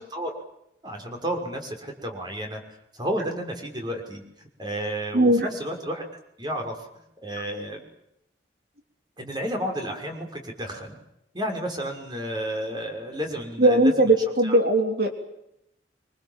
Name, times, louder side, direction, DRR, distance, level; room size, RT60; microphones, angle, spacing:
voice 1, 0.8-2.6 2.9-6.0 6.4-6.8 7.2-7.8 9.2-11.0 11.3-14.1 14.4-14.6, equal, 25° right, 3 dB, 6.1 m, -31 dB
voice 2, 5.1-5.5 13.6-15.1, right 1 dB, 60° right, 4 dB, 3.6 m, -19 dB
26.5 x 26.0 x 7.5 m, 0.81 s
head